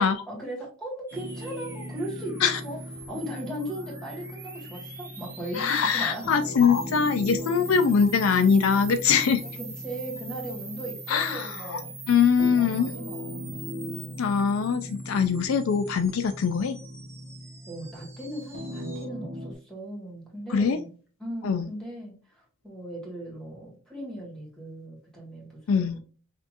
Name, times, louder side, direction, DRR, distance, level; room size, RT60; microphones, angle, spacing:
voice 1, 0.3-2.8 3.1-6.3 7.4-7.6 9.4-11.9 12.6-13.6 17.7-20.9 21.2-26.0, right 1 dB, 5° left, 1.8 m, -38 dB
sound 1, 1.1-19.1, right 4 dB, 15° right, 0.8 m, -44 dB
sound 2, 1.1-19.5, equal, 35° right, 1.2 m, -40 dB
voice 2, 5.5-9.4 11.1-11.8 12.1-12.9 14.2-16.8 20.5-20.8 21.4-21.6 25.7-26.0, left 6 dB, 70° left, 0.4 m, -23 dB
5.8 x 2.8 x 2.5 m
head